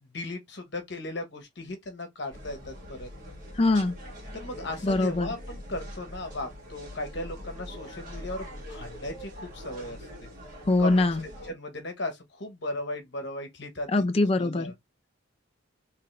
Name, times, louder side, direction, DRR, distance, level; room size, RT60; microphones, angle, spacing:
voice 1, 0.0-3.1 4.3-10.3 10.8-11.1 11.4-14.0 14.4-14.7, left 1 dB, 55° left, 1.3 m, -37 dB
sound 1, 2.3-11.5, equal, 40° right, 2.3 m, -43 dB
voice 2, 3.6-3.9 4.8-5.3 10.7-11.2 13.9-14.7, left 2 dB, 30° left, 0.4 m, -23 dB
3.6 x 3.4 x 3.3 m
head